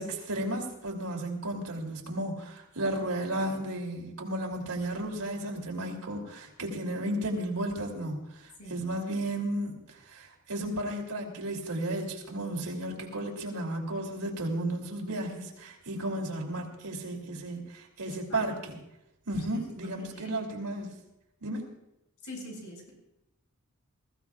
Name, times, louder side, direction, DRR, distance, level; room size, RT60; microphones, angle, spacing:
voice 1, 0.0-18.8 19.3-20.9 21.4-21.7, right 1 dB, 90° right, 1 dB, 2.9 m, -34 dB
voice 2, 18.0-18.4 19.5-20.4 22.2-22.9, left 1 dB, 90° left, 0 dB, 5.9 m, -44 dB
21.0 x 15.5 x 2.4 m, 0.89 s
head